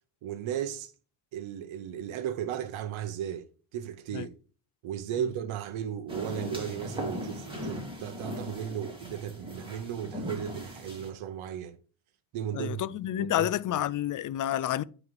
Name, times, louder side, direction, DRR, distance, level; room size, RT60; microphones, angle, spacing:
voice 1, 0.2-0.9 1.3-4.3 4.8-11.8 12.3-13.8, right 10 dB, 70° right, 0.8 m, -36 dB
sound 1, 6.1-11.1, equal, 10° right, 2.3 m, -38 dB
voice 2, 12.5-14.8, left 12 dB, 40° left, 0.4 m, -29 dB
9.3 x 3.2 x 4.7 m
cardioid pair, 85°, 49 cm